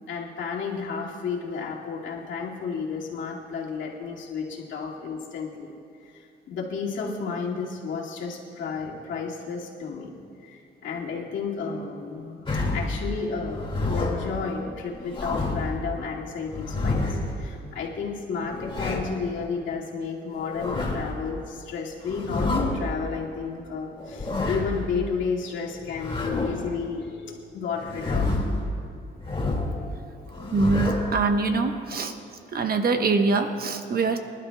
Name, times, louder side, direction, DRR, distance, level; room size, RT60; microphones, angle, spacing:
voice 1, 0.1-5.7 6.0-28.5 30.3-30.6, left 5 dB, 70° left, -3 dB, 2.3 m, -32 dB
sound 1, 12.5-13.0 13.4-14.3 14.9-15.7 16.5-17.4 18.4-19.2 20.3-21.1 22.0-22.8 24.0-24.8 25.9-26.7 27.8-28.6 29.2-29.8 30.3-31.2, left 2 dB, 25° left, 2.2 m, -28 dB
voice 2, 30.5-32.1 32.5-34.2, right 3 dB, 50° right, 6 dB, 1.1 m, -24 dB
25.5 x 11.5 x 2.3 m, 2.4 s
cardioid pair, 90°, 20 cm